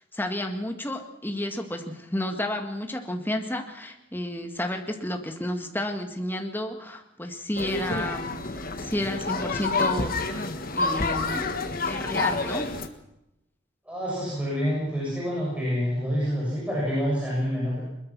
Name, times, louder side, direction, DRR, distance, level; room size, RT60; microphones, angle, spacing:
voice 1, 0.1-8.5 8.8-11.5 11.8-12.7, left 1 dB, 10° left, 4 dB, 1.9 m, -31 dB
sound 1, 7.6-12.9, left 3 dB, 45° left, 1.5 m, -28 dB
voice 2, 13.8-17.8, equal, 5° right, -6 dB, 7.4 m, -27 dB
21.5 x 21.0 x 6.1 m, 0.88 s
head